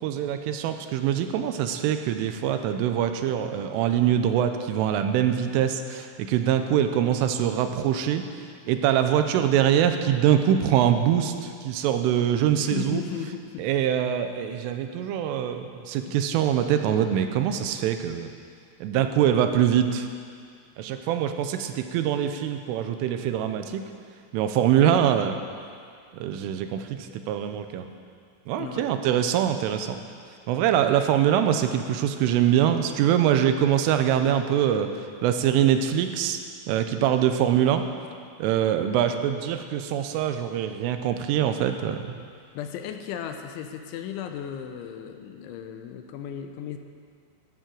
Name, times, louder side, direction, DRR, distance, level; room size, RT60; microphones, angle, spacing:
voice 1, 0.0-8.2 8.7-13.0 13.6-18.3 18.8-20.1 20.8-23.8 24.3-25.4 26.1-27.9 28.5-30.0 30.5-36.4 36.7-37.8 38.4-42.0, right 10 dB, 90° right, 7 dB, 3.4 m, -23 dB
voice 2, 12.5-13.7 16.0-16.1 19.1-19.2 28.6-29.1 42.5-46.8, left 9 dB, 80° left, 6 dB, 3.0 m, -36 dB
13.0 x 12.5 x 7.6 m, 2.2 s
omnidirectional pair, 5.7 m